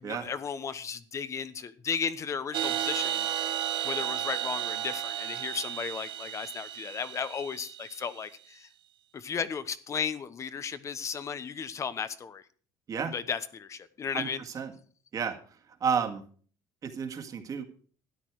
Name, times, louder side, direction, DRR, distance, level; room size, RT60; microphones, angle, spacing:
voice 1, 0.0-3.5 3.8-8.7 9.1-12.4 13.1-14.4, left 6 dB, 35° left, 1.0 m, -35 dB
sound 1, 2.5-8.1, right 11 dB, 65° right, 1.0 m, -33 dB
voice 2, 14.1-14.7 15.1-15.4 15.8-16.2 16.8-17.6, right 6 dB, 40° right, 1.9 m, -31 dB
13.0 x 9.9 x 4.8 m
cardioid pair, 125°, 9 cm